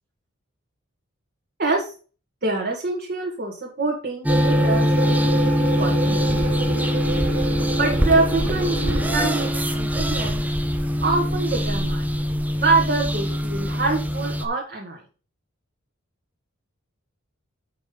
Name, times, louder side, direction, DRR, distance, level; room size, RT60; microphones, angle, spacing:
voice 1, 1.6-1.9 2.4-6.5 7.8-10.5 11.0-12.1 12.6-15.0, right 3 dB, 45° right, -1 dB, 1.8 m, -25 dB
sound 1, 4.2-14.5, equal, 10° right, 0.7 m, -23 dB
sound 2, 4.3-9.5, right 2 dB, 85° right, 2.6 m, -28 dB
7.7 x 5.5 x 5.2 m, 0.37 s
head